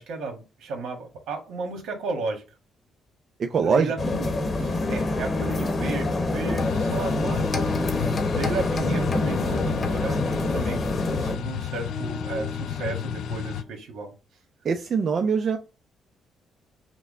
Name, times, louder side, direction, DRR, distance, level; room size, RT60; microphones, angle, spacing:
voice 1, 0.0-2.4 3.6-10.8 11.1-14.1, right 3 dB, 80° right, 3 dB, 1.4 m, -34 dB
voice 2, 3.4-3.9 14.6-15.6, right 5 dB, 50° right, 5 dB, 0.5 m, -23 dB
sound 1, 4.0-11.3, left 2 dB, 40° left, 0.9 m, -26 dB
sound 2, 4.8-13.7, left 2 dB, 10° left, 0.6 m, -39 dB
sound 3, 6.6-13.6, left 9 dB, 75° left, 0.4 m, -32 dB
5.9 x 2.2 x 3.5 m, 0.30 s
cardioid pair, 90°, 0 cm